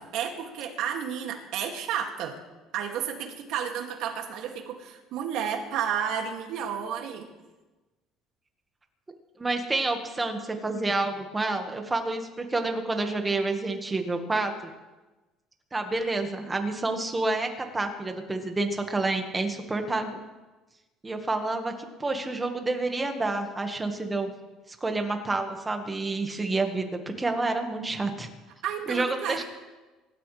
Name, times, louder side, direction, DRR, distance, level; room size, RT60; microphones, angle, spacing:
voice 1, 0.1-2.4 2.7-7.3 28.6-29.4, right 8 dB, 65° right, 3 dB, 2.3 m, -31 dB
voice 2, 9.4-14.7 15.7-20.2 21.0-24.3 24.7-28.3 28.9-29.4, right 2 dB, 15° right, 5 dB, 1.6 m, -29 dB
24.0 x 13.0 x 3.3 m, 1.2 s
cardioid pair, 145°, 0 cm